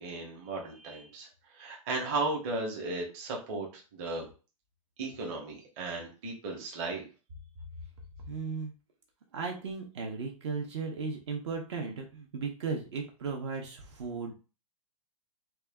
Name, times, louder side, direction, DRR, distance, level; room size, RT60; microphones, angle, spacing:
voice 1, 0.0-4.3 5.0-7.1, right 3 dB, 25° right, -1 dB, 0.9 m, -35 dB
voice 2, 8.3-8.7 9.3-14.3, right 4 dB, 50° right, 1 dB, 0.8 m, -36 dB
3.9 x 2.3 x 3.5 m, 0.33 s
supercardioid pair, 175°, 18 cm